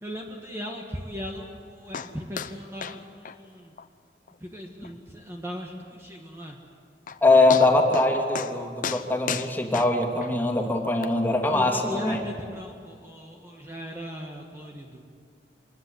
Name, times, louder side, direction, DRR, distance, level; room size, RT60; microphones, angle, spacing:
voice 1, 0.0-3.7 4.4-6.6 11.5-15.0, equal, 15° right, 0 dB, 1.7 m, -38 dB
sound 1, 1.9-2.1 2.4-2.5 2.8-3.0 3.2-3.4 3.8-3.9 4.3-4.4 4.8-4.9 6.6-6.7 7.1-7.2 7.5-8.1 8.3-8.5 8.8-10.3 11.0-11.1, left 6 dB, 50° left, 0.9 m, -33 dB
voice 2, 7.2-12.2, left 2 dB, 10° left, 1 dB, 2.7 m, -22 dB
25.0 x 21.0 x 8.0 m, 2.2 s
head